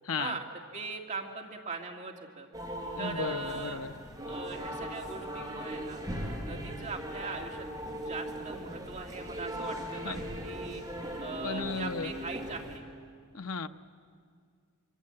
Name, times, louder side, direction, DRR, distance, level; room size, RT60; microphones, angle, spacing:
voice 1, 0.0-0.4 3.0-3.9 10.0-10.2 11.4-12.1 13.3-13.7, left 5 dB, 70° left, 8 dB, 0.9 m, -35 dB
voice 2, 0.7-2.5 3.0-3.8 4.3-6.0 6.4-10.8 11.2-12.8, right 4 dB, 35° right, 1 dB, 2.0 m, -40 dB
sound 1, 2.5-12.8, equal, 15° right, 4.6 m, -39 dB
25.5 x 25.5 x 7.8 m, 2.1 s
head